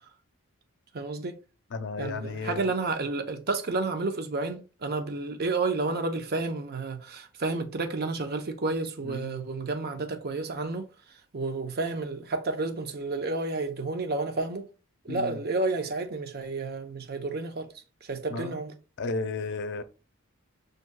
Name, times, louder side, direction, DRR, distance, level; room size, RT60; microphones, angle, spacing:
voice 1, 0.9-1.4 2.0-10.9 11.3-14.7 15.0-17.7 18.0-18.7, right 3 dB, 45° right, 0.7 m, -31 dB
voice 2, 1.7-2.6 9.0-9.4 15.1-15.4 18.3-18.6 19.0-19.8, left 3 dB, 55° left, 0.5 m, -33 dB
7.5 x 2.7 x 2.3 m
head